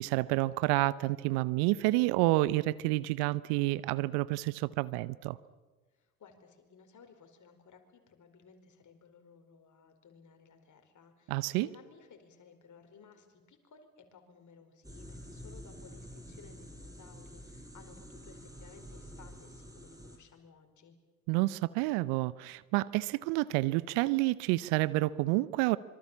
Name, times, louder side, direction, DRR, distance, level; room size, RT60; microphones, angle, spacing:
voice 1, 0.0-5.4 11.3-11.7 21.3-25.8, right 19 dB, 65° right, 20 dB, 0.8 m, -29 dB
voice 2, 5.9-20.9, left 5 dB, 45° left, 6 dB, 4.7 m, -58 dB
sound 1, 14.8-20.2, equal, 10° right, 5.5 m, -48 dB
25.5 x 24.5 x 7.3 m, 1.3 s
hypercardioid pair, 55°, 42 cm